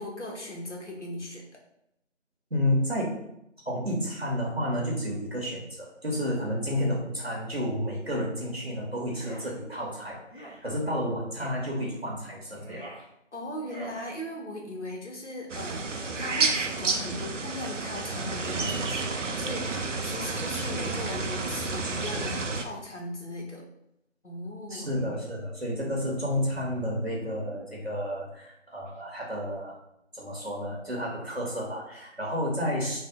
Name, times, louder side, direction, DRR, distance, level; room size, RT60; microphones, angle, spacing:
voice 1, 0.0-1.5 13.3-23.6 24.2-25.4, left 1 dB, 70° left, -1 dB, 0.9 m, -38 dB
voice 2, 2.5-3.2 3.7-12.8 24.7-29.8 30.1-33.0, equal, 55° right, -3 dB, 0.8 m, -31 dB
sound 1, 9.1-9.5 10.3-10.6 11.4-11.6 12.4-13.1 13.6-14.0, equal, 45° left, 0.6 m, -44 dB
sound 2, 15.5-22.6, right 3 dB, 80° right, 0.5 m, -30 dB
2.6 x 2.1 x 3.6 m, 0.81 s
figure-of-eight pair, 180°, 37 cm